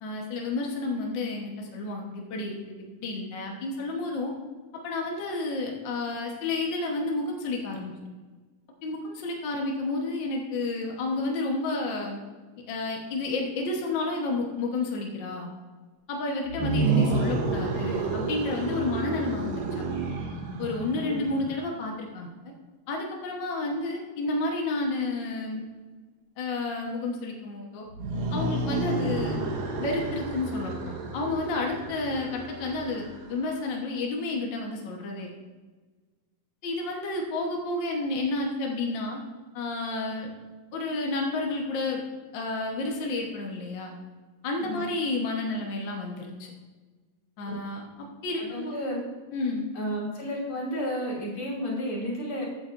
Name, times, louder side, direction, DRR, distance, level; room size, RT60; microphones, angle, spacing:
voice 1, 0.0-2.7 3.0-4.3 4.8-7.9 8.8-12.2 12.6-15.5 16.1-20.0 20.6-22.3 22.9-25.6 26.4-27.8 28.3-29.4 29.8-35.3 36.6-39.2 39.5-40.3 40.7-42.0 42.3-43.9 44.4-46.5 47.4-48.7 49.3-49.7, left 2 dB, 65° left, 0 dB, 1.1 m, -31 dB
sound 1, 16.5-21.6 27.9-33.6, right 3 dB, 90° right, 3.0 m, -30 dB
voice 2, 48.4-49.1 49.7-52.5, equal, 45° left, -4 dB, 3.5 m, -32 dB
14.5 x 9.4 x 2.6 m, 1.3 s
omnidirectional pair, 3.8 m